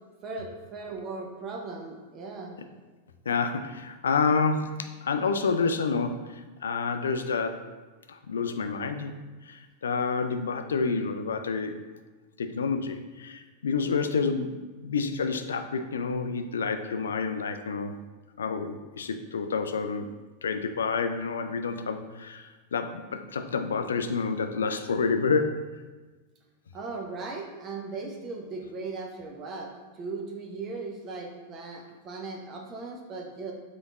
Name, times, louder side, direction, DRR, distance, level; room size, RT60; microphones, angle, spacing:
voice 1, 0.2-2.6 26.7-33.5, right 3 dB, 30° right, 1 dB, 0.6 m, -38 dB
voice 2, 3.3-7.6 8.1-9.1 9.4-11.8 12.4-18.0 18.4-20.1 20.4-25.6, left 4 dB, 70° left, 8 dB, 0.3 m, -29 dB
5.0 x 3.9 x 2.3 m, 1.3 s
figure-of-eight pair, 90°, 0 cm